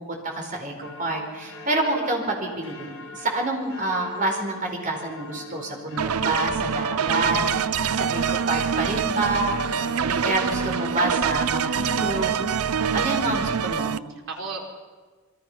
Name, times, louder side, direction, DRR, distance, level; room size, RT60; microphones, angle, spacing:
voice 1, 0.0-7.4 7.9-9.6 10.0-12.5 12.9-14.0, right 2 dB, 35° right, 2 dB, 4.7 m, -28 dB
sound 1, 0.8-11.3, left 2 dB, 70° left, 4.2 m, -42 dB
sound 2, 6.0-14.0, right 7 dB, 85° right, 0.6 m, -25 dB
voice 2, 9.7-10.0 12.7-13.2 14.1-14.8, right 3 dB, 60° right, 0 dB, 4.5 m, -37 dB
27.5 x 22.5 x 5.7 m, 1.4 s
head